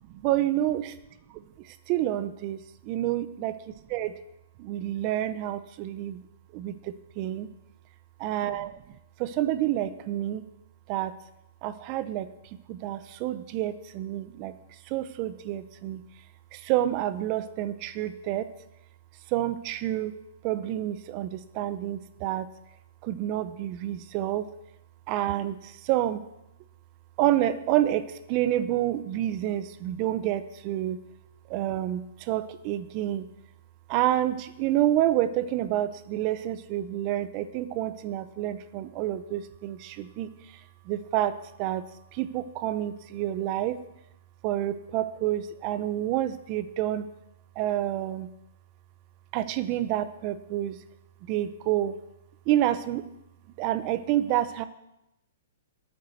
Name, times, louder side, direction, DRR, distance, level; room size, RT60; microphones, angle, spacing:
voice 1, 0.2-0.8 1.9-3.5 3.9-4.1 4.6-6.2 6.5-7.5 8.2-8.8 9.2-10.4 10.9-11.1 11.6-12.3 12.7-14.5 14.9-16.0 16.5-18.5 19.3-20.1 20.4-22.5 23.0-24.5 25.1-26.2 27.2-31.0 31.5-33.3 33.9-40.3 40.9-41.8 42.1-43.8 44.4-47.1 47.6-48.3 49.3-50.8 51.3-52.0 52.5-53.1 53.6-54.7, right 13 dB, 35° right, 13 dB, 0.6 m, -28 dB
9.0 x 7.0 x 7.9 m, 0.88 s
hypercardioid pair, 140°, 0 cm